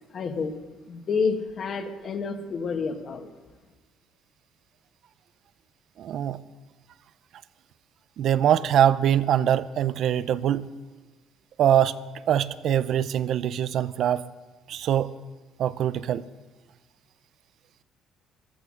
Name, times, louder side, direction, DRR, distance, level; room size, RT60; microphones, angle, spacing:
voice 1, 0.1-0.5 0.9-3.3, left 5 dB, 45° left, 6 dB, 1.5 m, -29 dB
voice 2, 6.0-6.4 8.2-10.7 11.6-11.9 12.3-14.2 14.7-15.1 15.6-16.3, right 10 dB, 60° right, 15 dB, 0.6 m, -23 dB
15.0 x 13.5 x 6.4 m, 1.2 s
cardioid pair, 120°, 0 cm